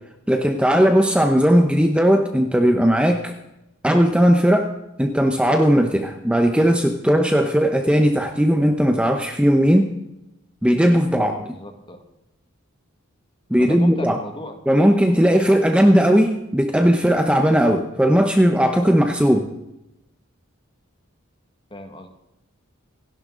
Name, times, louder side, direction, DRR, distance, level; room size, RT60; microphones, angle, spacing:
voice 1, 0.3-3.3 3.8-4.7 5.0-9.9 10.6-11.4 13.5-14.2 14.7-19.5, equal, 5° right, 4 dB, 1.0 m, -17 dB
voice 2, 11.4-12.0 13.6-14.5 15.2-15.6 21.7-22.1, left 1 dB, 25° left, 5 dB, 2.0 m, -36 dB
27.5 x 11.5 x 4.0 m, 0.91 s
head